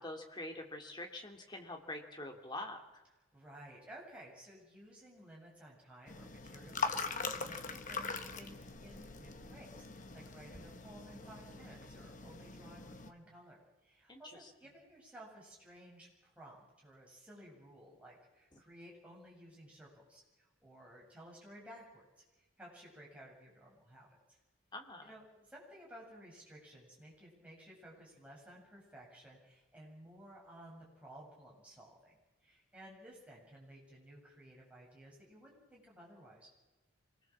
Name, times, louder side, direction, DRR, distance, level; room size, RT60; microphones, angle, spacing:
voice 1, 0.0-3.0 14.1-14.2 18.5-18.6 24.7-25.1, left 1 dB, 20° left, 3 dB, 2.7 m, -45 dB
voice 2, 3.3-22.2 22.6-24.1 25.0-36.5, right 1 dB, 5° right, -4 dB, 7.6 m, -56 dB
sound 1, 6.1-13.1, left 4 dB, 35° left, 1.4 m, -42 dB
25.5 x 20.0 x 7.4 m, 1.1 s
head